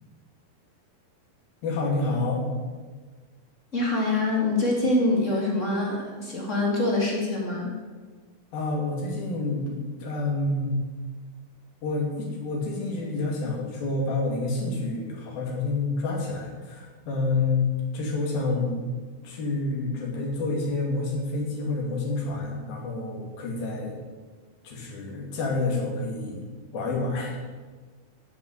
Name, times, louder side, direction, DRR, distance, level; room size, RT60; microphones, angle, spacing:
voice 1, 1.6-2.4 8.5-10.8 11.8-18.9 19.2-24.0 24.6-27.4, left 3 dB, 70° left, -1 dB, 4.2 m, -28 dB
voice 2, 3.7-7.7, left 2 dB, 20° left, -2 dB, 2.4 m, -25 dB
11.0 x 6.8 x 9.3 m, 1.4 s
omnidirectional pair, 4.5 m